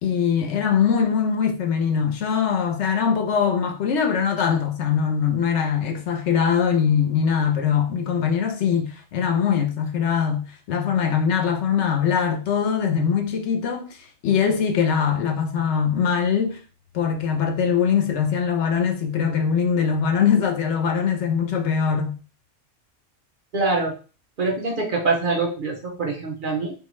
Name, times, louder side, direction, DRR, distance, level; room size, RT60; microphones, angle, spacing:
voice 1, 0.0-13.9 14.2-16.6 16.9-22.2, left 7 dB, 70° left, 0.9 m, -22 dB
voice 2, 23.5-23.9 24.4-26.7, right 3 dB, 55° right, 0.6 m, -24 dB
3.6 x 2.1 x 3.0 m
omnidirectional pair, 1.3 m